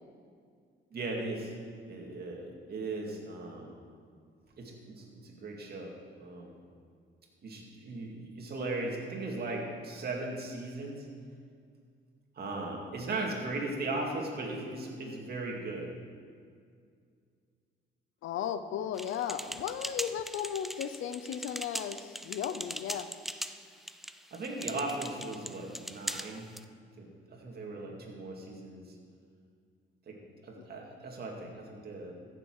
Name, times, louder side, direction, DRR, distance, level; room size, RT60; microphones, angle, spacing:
voice 1, 0.9-1.5 1.9-3.7 4.6-6.5 7.4-11.1 12.4-15.9 24.3-26.5 27.0-29.0 30.1-32.1, right 2 dB, 50° right, 0 dB, 2.3 m, -38 dB
voice 2, 18.2-23.1, left 9 dB, 80° left, 11 dB, 0.7 m, -35 dB
sound 1, 19.0-26.6, equal, ahead, 0.4 m, -41 dB
15.0 x 7.0 x 4.7 m, 2.2 s
cardioid pair, 90°, 20 cm